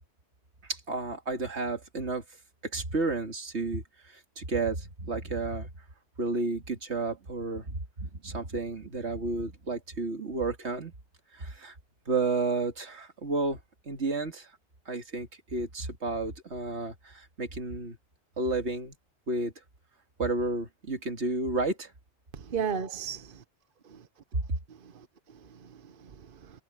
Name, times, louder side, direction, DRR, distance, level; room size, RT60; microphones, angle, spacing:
voice 1, 0.6-2.2 2.7-5.7 6.2-10.9 11.3-11.8 12.1-13.6 13.9-14.5 14.9-18.0 18.4-19.0 19.3-19.5 20.2-21.9 24.3-24.4, right 3 dB, 75° right, 2.5 m, -31 dB
voice 2, 22.3-23.4 23.8-24.1 24.7-26.6, right 7 dB, 55° right, 1.0 m, -37 dB
omnidirectional pair, 1.1 m